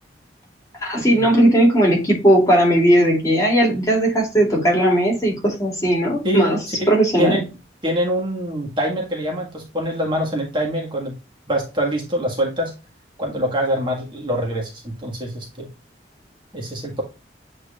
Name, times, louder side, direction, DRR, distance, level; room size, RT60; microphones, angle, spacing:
voice 1, 0.8-6.6 6.9-7.4, right 1 dB, 20° left, 2.8 m, -17 dB
voice 2, 6.2-6.9 7.2-7.4 7.8-11.1 11.5-12.7 13.2-15.7 16.5-17.0, equal, 30° right, 1.7 m, -24 dB
8.6 x 4.5 x 2.4 m
head